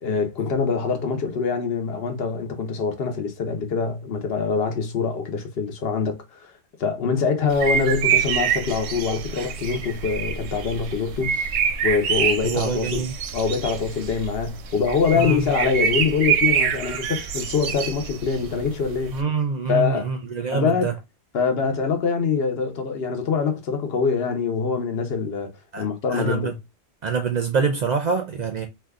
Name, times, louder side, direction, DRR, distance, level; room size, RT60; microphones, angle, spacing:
voice 1, 0.0-6.5 6.8-11.5 11.8-13.1 13.3-19.1 19.7-20.1 20.5-20.9 21.3-25.5 25.8-26.6, left 5 dB, 70° left, 0.9 m, -24 dB
sound 1, 7.5-19.2, right 8 dB, 90° right, 0.9 m, -26 dB
voice 2, 12.4-13.1 15.1-15.5 19.1-20.9 25.7-26.5 27.0-28.7, right 5 dB, 55° right, 0.5 m, -25 dB
2.6 x 2.3 x 3.4 m
omnidirectional pair, 1.1 m